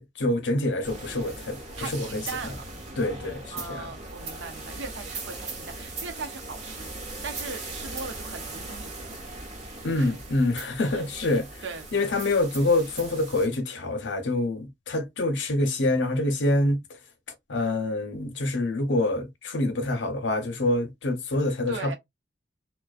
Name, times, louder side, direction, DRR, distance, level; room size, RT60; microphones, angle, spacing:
voice 1, 0.0-2.2 3.0-3.4 3.7-3.9 9.8-11.5 11.9-16.8 17.5-22.0, left 2 dB, 75° left, 0.7 m, -26 dB
sound 1, 0.8-13.5, right 2 dB, 40° right, 0.9 m, -39 dB
voice 2, 1.8-2.6 3.5-8.9 9.9-10.3 10.8-11.1 11.6-12.1 21.7-22.0, right 4 dB, 80° right, 0.7 m, -39 dB
2.4 x 2.1 x 2.4 m
head